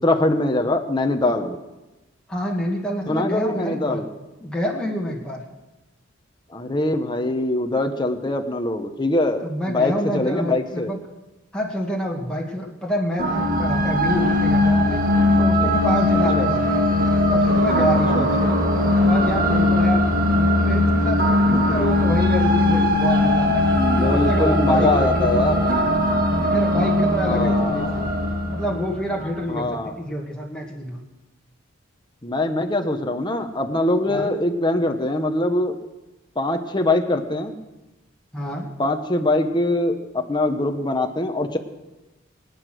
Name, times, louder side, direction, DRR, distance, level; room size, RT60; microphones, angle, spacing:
voice 1, 0.0-1.6 3.1-4.1 6.5-10.9 16.4-16.5 18.1-18.7 23.7-25.6 27.3-28.1 29.5-29.9 32.2-35.8 36.4-37.5 38.8-41.6, left 2 dB, 20° left, 5 dB, 1.1 m, -23 dB
voice 2, 2.3-4.0 4.4-5.4 9.4-11.0 11.5-15.0 15.3-16.6 17.3-18.4 19.0-20.1 20.6-23.7 23.9-25.9 26.4-28.1 28.5-31.0 34.1-34.3 38.3-38.7, equal, 5° left, -3 dB, 2.1 m, -27 dB
sound 1, 13.2-29.4, left 1 dB, 45° right, 1.9 m, -19 dB
23.0 x 9.7 x 6.3 m, 1.1 s
head